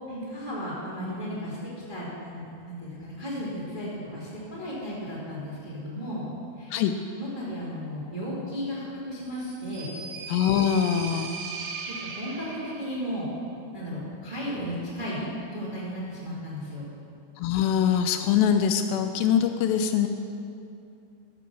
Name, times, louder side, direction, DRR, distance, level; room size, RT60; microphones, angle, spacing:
voice 1, 0.1-1.6 1.9-6.3 6.6-6.8 7.2-9.9 12.0-13.3 13.7-16.9, equal, 15° right, -7 dB, 1.6 m, -34 dB
sound 1, 9.3-13.1, right 5 dB, 75° right, 2.9 m, -38 dB
voice 2, 10.3-11.3 17.4-20.1, left 8 dB, 85° left, 7 dB, 2.6 m, -23 dB
12.0 x 6.9 x 6.9 m, 2.5 s
omnidirectional pair, 5.1 m